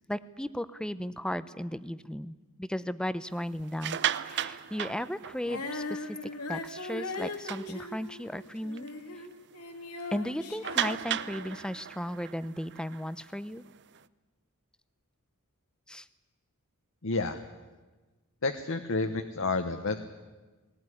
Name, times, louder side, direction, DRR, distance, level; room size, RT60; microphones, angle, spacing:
voice 1, 0.1-6.2 6.5-8.9 10.1-13.7 15.9-16.1, equal, 5° left, 15 dB, 0.6 m, -35 dB
sound 1, 3.6-5.8 6.2-6.4 6.8-6.9 7.3-8.3 8.8-8.9 9.2-9.3 10.6-14.0, right 10 dB, 55° right, 0.6 m, -35 dB
Female singing, 5.4-9.3 9.5-11.7, left 3 dB, 85° left, 2.2 m, -39 dB
voice 2, 17.0-17.4 18.4-20.0, left 3 dB, 65° left, 6 dB, 1.1 m, -30 dB
19.0 x 19.0 x 9.9 m, 1.2 s
head